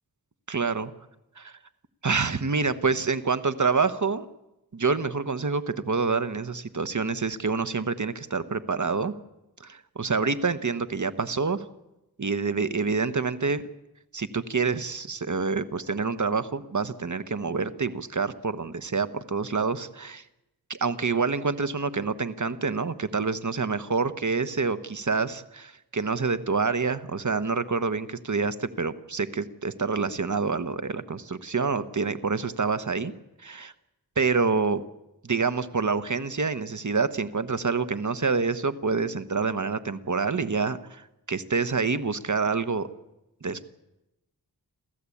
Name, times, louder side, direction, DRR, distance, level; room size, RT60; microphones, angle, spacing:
voice 1, 0.5-0.9 1.4-1.6 2.0-4.3 4.7-9.1 9.6-11.7 12.2-13.6 14.1-20.2 20.7-33.1 33.4-33.7 34.2-34.8 35.2-42.9 43.4-43.7, right 4 dB, 50° right, 12 dB, 1.2 m, -27 dB
28.5 x 13.5 x 8.6 m, 0.94 s
wide cardioid pair, 60°, 39 cm